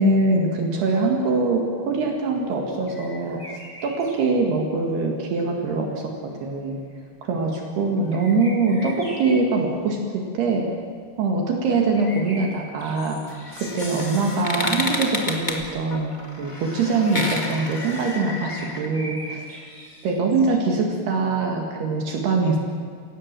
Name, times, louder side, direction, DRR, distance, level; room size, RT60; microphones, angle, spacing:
voice 1, 0.0-3.4 3.8-6.8 7.2-10.7 11.2-13.2 13.6-19.5 20.0-22.6, right 3 dB, 70° right, 1 dB, 3.9 m, -23 dB
sound 1, 2.8-4.2 8.0-9.4 11.9-14.0 14.6-14.7 15.2-15.3 15.5-15.6 17.9-20.6, equal, 5° left, 6.9 m, -41 dB
sound 2, 13.3-18.9, left 2 dB, 25° left, 1.1 m, -30 dB
28.5 x 17.0 x 7.6 m, 2.1 s
omnidirectional pair, 5.0 m